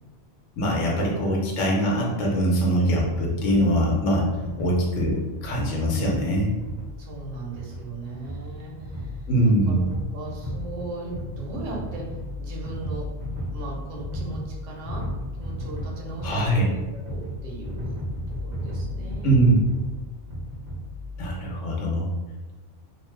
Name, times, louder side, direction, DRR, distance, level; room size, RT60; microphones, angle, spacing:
voice 1, 0.6-4.3 4.6-6.5 9.3-9.9 16.2-16.7 19.2-19.6 21.2-22.1, right 1 dB, 85° left, -3 dB, 1.1 m, -22 dB
sound 1, 2.9-21.3, equal, 40° right, 0.9 m, -35 dB
voice 2, 4.4-4.8 7.0-12.0 12.4-13.1 13.5-15.0 15.4-18.0 18.3-19.6 21.2-22.0, right 3 dB, 85° right, -2 dB, 1.1 m, -38 dB
2.8 x 2.2 x 3.2 m, 1.2 s
omnidirectional pair, 1.2 m